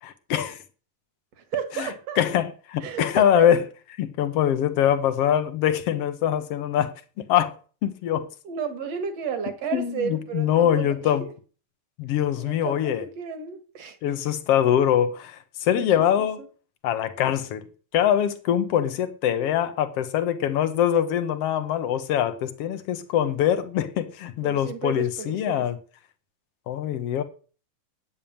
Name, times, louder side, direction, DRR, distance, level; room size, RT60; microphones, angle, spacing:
voice 1, 0.0-0.6 1.8-1.9 2.2-3.6 4.0-7.6 7.8-8.3 9.7-11.3 12.0-13.0 14.0-16.4 16.8-17.7 17.9-25.8 26.7-27.2, left 10 dB, 60° left, 2.0 m, -23 dB
voice 2, 1.4-2.2 2.8-3.5 8.4-11.3 12.4-14.0 16.2-16.5 24.4-25.7, right 7 dB, 60° right, 2.7 m, -33 dB
9.2 x 9.0 x 8.7 m
omnidirectional pair, 3.4 m